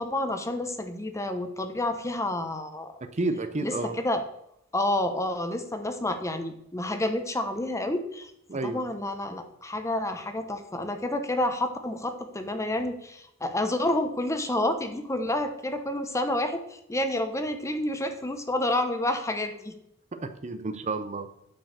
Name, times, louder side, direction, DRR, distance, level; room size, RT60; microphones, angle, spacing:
voice 1, 0.0-2.9 3.6-4.2 4.7-8.3 8.6-19.7, left 1 dB, 15° left, 7 dB, 0.8 m, -29 dB
voice 2, 3.1-3.9 8.5-8.8 20.1-21.3, right 3 dB, 35° right, 10 dB, 0.6 m, -30 dB
9.1 x 4.7 x 6.5 m, 0.78 s
head